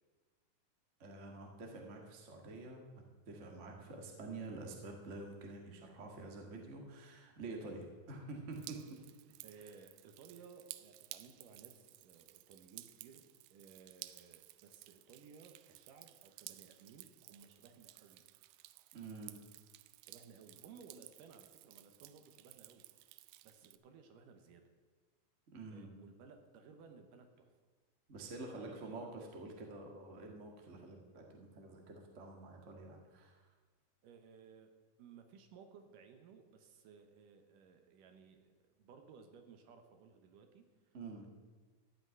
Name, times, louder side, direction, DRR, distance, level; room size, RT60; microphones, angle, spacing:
voice 1, 1.0-2.8 3.3-8.8 18.9-19.3 25.5-25.9 28.1-33.4 40.9-41.3, right 3 dB, 45° right, 1 dB, 0.9 m, -48 dB
Drip, 8.5-23.8, right 17 dB, 85° right, 2.4 m, -55 dB
voice 2, 9.4-13.2 13.5-18.2 20.0-22.9 23.4-24.6 25.7-27.5 28.6-29.2 34.0-34.7 35.0-41.0, right 5 dB, 70° right, 6 dB, 2.4 m, -59 dB
13.5 x 5.9 x 9.1 m, 1.4 s
omnidirectional pair, 4.3 m